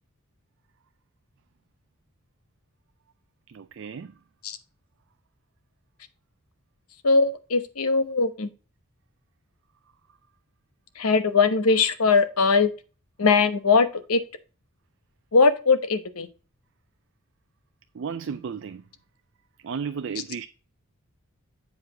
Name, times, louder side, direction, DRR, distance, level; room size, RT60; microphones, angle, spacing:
voice 1, 3.5-4.1 17.9-18.8 19.6-20.5, right 6 dB, 55° right, 0.4 m, -33 dB
voice 2, 7.0-8.5 11.0-12.7 13.2-14.2 15.3-16.3, left 4 dB, 80° left, 0.9 m, -20 dB
8.0 x 4.9 x 3.7 m
head